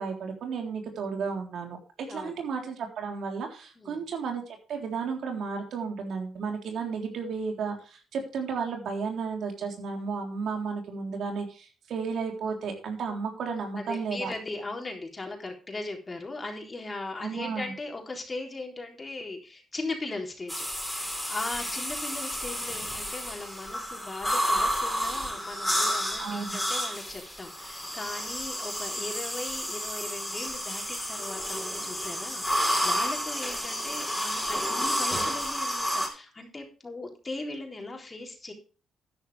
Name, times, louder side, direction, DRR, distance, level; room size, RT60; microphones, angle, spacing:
voice 1, 0.0-14.3 17.2-17.7 26.2-26.6, right 5 dB, 70° right, 3 dB, 3.7 m, -33 dB
voice 2, 2.1-2.4 3.8-4.1 13.8-20.7 21.0-38.5, left 2 dB, 25° left, 2 dB, 3.8 m, -38 dB
sound 1, 20.5-36.1, equal, 5° left, 4.5 m, -31 dB
12.5 x 10.5 x 3.4 m, 0.36 s
cardioid pair, 90°, 0 cm